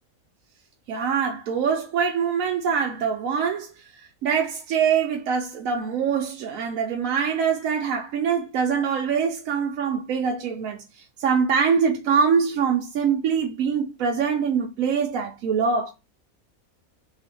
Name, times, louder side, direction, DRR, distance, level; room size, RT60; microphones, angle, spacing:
voice 1, 0.9-15.9, right 6 dB, 70° right, 1.0 m, -24 dB
2.7 x 2.6 x 3.6 m
omnidirectional pair, 1.5 m